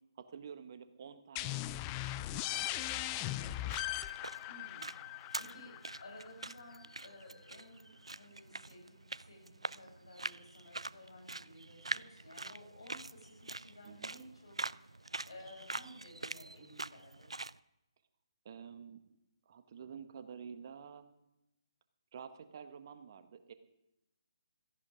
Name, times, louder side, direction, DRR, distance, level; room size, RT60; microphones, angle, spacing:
voice 1, 0.1-1.6 2.0-3.8 5.4-5.6 13.8-14.1 18.4-19.2 19.4-21.1 22.1-23.5, right 7 dB, 40° right, 10 dB, 1.3 m, -50 dB
sound 1, 1.4-6.8, left 15 dB, 20° left, 0.5 m, -39 dB
sound 2, 3.4-17.6, right 2 dB, 85° right, 0.4 m, -45 dB
voice 2, 4.5-4.9 5.4-17.3, left 1 dB, 65° left, 0 dB, 7.4 m, -55 dB
16.5 x 14.0 x 5.1 m, 0.90 s
figure-of-eight pair, 145°, 3 cm